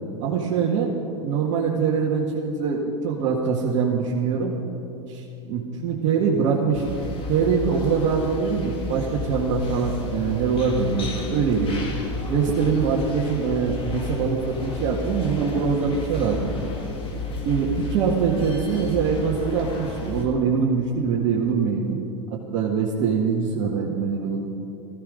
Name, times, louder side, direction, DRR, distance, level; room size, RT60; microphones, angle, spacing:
voice 1, 0.2-0.9 1.2-4.6 5.1-7.0 7.3-11.9 12.3-16.5 17.4-22.0 22.5-24.4, right 5 dB, 50° right, -4 dB, 1.9 m, -23 dB
sound 1, 6.7-20.2, left 2 dB, 35° left, 2.8 m, -32 dB
17.5 x 14.5 x 5.1 m, 2.9 s
hypercardioid pair, 95°, 16 cm